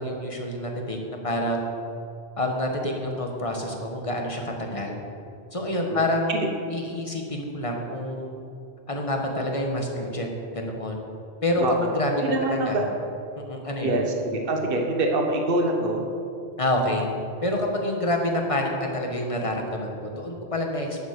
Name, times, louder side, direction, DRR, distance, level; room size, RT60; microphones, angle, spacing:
voice 1, 0.0-1.7 2.4-5.0 5.5-6.4 6.7-8.4 8.9-10.3 10.5-11.0 11.4-12.9 13.4-14.0 16.6-17.1 17.4-21.0, left 1 dB, 30° left, 1 dB, 1.6 m, -27 dB
voice 2, 12.2-12.9 13.8-16.0, right 2 dB, 60° right, 2 dB, 1.4 m, -25 dB
10.5 x 8.9 x 6.8 m, 2.6 s
omnidirectional pair, 1.1 m